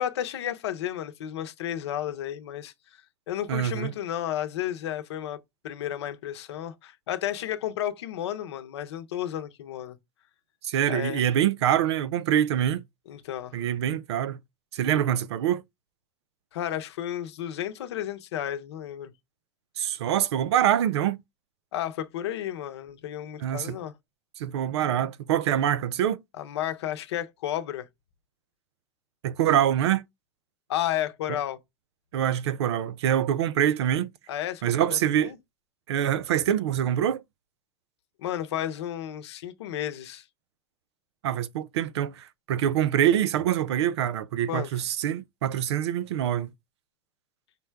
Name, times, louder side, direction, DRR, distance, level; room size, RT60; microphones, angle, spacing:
voice 1, 0.0-2.7 3.3-5.4 5.6-10.0 10.9-11.3 13.1-13.6 16.5-19.1 21.7-23.9 26.4-27.9 30.7-31.6 34.3-34.6 34.9-35.4 38.2-40.2 44.5-44.7, left 11 dB, 80° left, 0.7 m, -32 dB
voice 2, 3.5-3.9 10.6-12.8 13.5-14.4 14.7-15.6 19.8-21.2 23.4-23.8 24.4-26.2 29.2-30.0 32.1-34.1 34.6-35.3 35.9-37.2 41.2-46.5, right 10 dB, 80° right, 0.5 m, -25 dB
5.3 x 2.2 x 4.5 m
hypercardioid pair, 100°, 14 cm